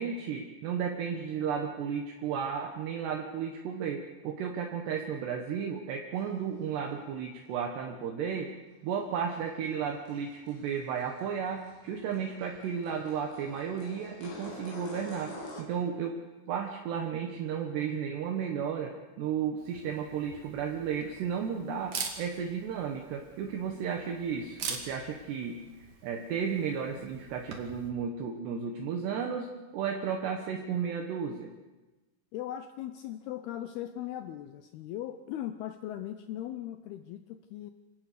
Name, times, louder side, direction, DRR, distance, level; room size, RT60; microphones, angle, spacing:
voice 1, 0.0-8.5 8.8-16.2 16.5-25.6 26.0-31.5, right 7 dB, 70° right, 3 dB, 3.2 m, -33 dB
sound 1, 6.2-6.3 6.6-6.7 9.2-15.6, left 1 dB, 65° left, 5.7 m, -47 dB
Camera, 19.6-27.9, right 5 dB, 50° right, 3.1 m, -44 dB
voice 2, 32.3-37.7, left 12 dB, 85° left, 9 dB, 2.2 m, -39 dB
26.0 x 18.0 x 6.7 m, 1.2 s
omnidirectional pair, 5.5 m